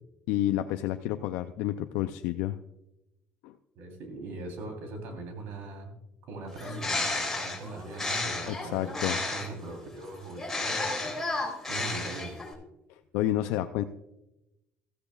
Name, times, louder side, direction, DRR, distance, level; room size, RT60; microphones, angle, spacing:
voice 1, 0.3-2.6 3.4-3.6 8.5-9.2 12.9-13.8, left 13 dB, 90° left, 8 dB, 0.4 m, -30 dB
voice 2, 3.7-5.9 6.2-12.4, right 2 dB, 75° right, 4 dB, 3.4 m, -41 dB
Bird, 6.5-9.6 10.4-12.5, left 2 dB, 10° left, 3.6 m, -32 dB
16.0 x 13.5 x 2.4 m, 0.92 s
cardioid pair, 105°, 4 cm